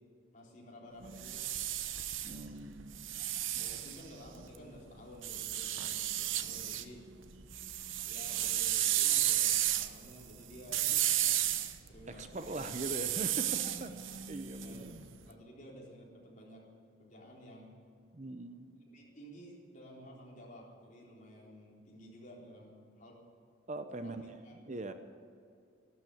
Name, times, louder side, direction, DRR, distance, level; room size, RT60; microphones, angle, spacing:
voice 1, 0.3-1.9 3.6-7.0 8.0-11.3 11.8-12.7 13.6-13.7 14.6-16.7 17.0-17.8 18.7-23.2 23.9-24.5, equal, 40° left, -3 dB, 4.0 m, -53 dB
sound 1, 1.0-4.6 5.2-6.9 7.2-15.1, right 12 dB, 75° right, 0.9 m, -33 dB
voice 2, 2.2-3.0 3.5-3.8 12.1-13.9 14.3-14.9 18.1-18.7 23.7-24.9, right 2 dB, 35° right, 8 dB, 0.7 m, -41 dB
14.0 x 12.5 x 8.5 m, 2.5 s
head